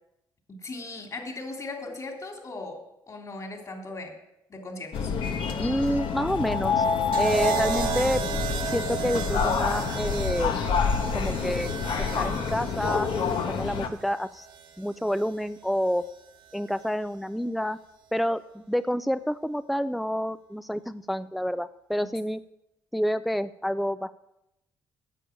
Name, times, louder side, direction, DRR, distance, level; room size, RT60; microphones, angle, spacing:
voice 1, 0.5-4.1 4.5-5.1, left 2 dB, 40° left, 2 dB, 3.1 m, -38 dB
sound 1, 4.9-13.9, left 5 dB, 65° left, 1.2 m, -27 dB
voice 2, 5.6-6.8 7.2-8.2 8.6-10.6 11.1-11.7 12.0-13.1 13.5-14.5 14.8-16.0 16.5-17.8 18.1-22.4 22.9-24.1, equal, ahead, 13 dB, 0.4 m, -28 dB
sound 2, 7.1-15.3 16.5-16.9, right 8 dB, 70° right, 1.5 m, -35 dB
10.0 x 6.9 x 8.6 m, 0.87 s
supercardioid pair, 75°, 9 cm